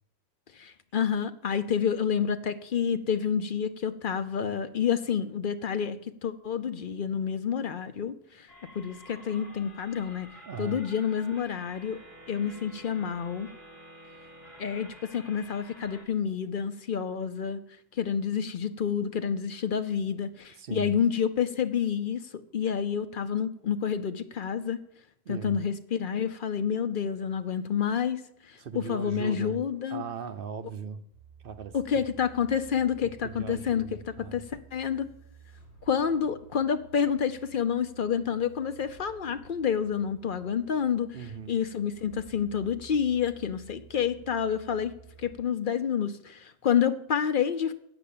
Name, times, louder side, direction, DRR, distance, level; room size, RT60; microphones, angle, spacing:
voice 1, 0.6-8.5 8.7-10.3 10.6-12.0 12.3-13.5 14.6-17.6 17.9-22.2 22.5-24.8 25.3-28.2 28.5-30.0 31.7-35.1 35.9-41.2 41.5-47.7, left 7 dB, 60° left, 11 dB, 0.8 m, -29 dB
sound 1, 8.5-16.0, equal, 40° left, 2.6 m, -50 dB
voice 2, 10.5-10.8 20.6-21.0 25.3-25.6 28.6-29.6 29.9-31.0 31.4-32.0 33.0-34.4 41.1-41.5, right 7 dB, 60° right, 10 dB, 0.9 m, -38 dB
sound 2, 31.1-45.4, right 7 dB, 10° right, 5.8 m, -53 dB
8.3 x 7.0 x 8.5 m, 0.74 s
omnidirectional pair, 1.1 m